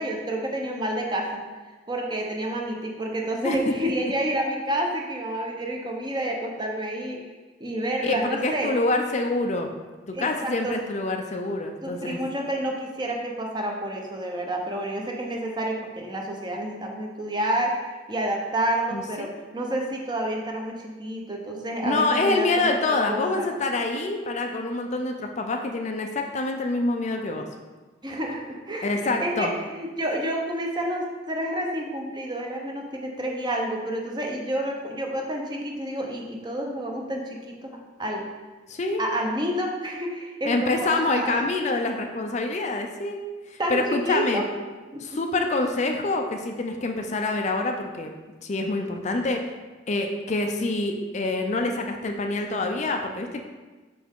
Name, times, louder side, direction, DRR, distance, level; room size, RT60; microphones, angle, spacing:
voice 1, 0.0-1.4 1.9-7.2 7.6-8.7 10.1-10.8 11.8-22.8 23.1-23.5 28.0-38.3 39.0-41.5 43.6-44.5 44.9-45.2, right 1 dB, 25° right, 1 dB, 0.8 m, -29 dB
voice 2, 8.0-9.7 10.1-12.2 18.9-19.3 21.8-27.5 28.8-29.5 38.7-39.0 40.4-43.2 43.5-44.4 45.0-48.1 48.4-49.4 49.9-53.4, left 2 dB, 40° left, 4 dB, 0.4 m, -26 dB
5.9 x 5.2 x 3.6 m, 1.3 s
head